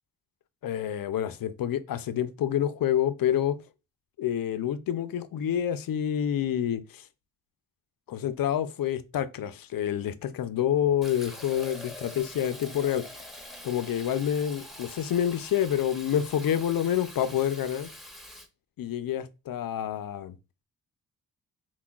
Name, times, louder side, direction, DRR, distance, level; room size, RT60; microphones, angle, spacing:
voice 1, 0.6-3.6 4.2-7.1 8.1-13.1 13.6-17.9 18.8-20.4, left 10 dB, 65° left, 0.5 m, -28 dB
Fill (with liquid), 11.0-18.5, left 1 dB, ahead, 0.9 m, -45 dB
5.7 x 2.2 x 2.3 m
cardioid pair, 70°, 38 cm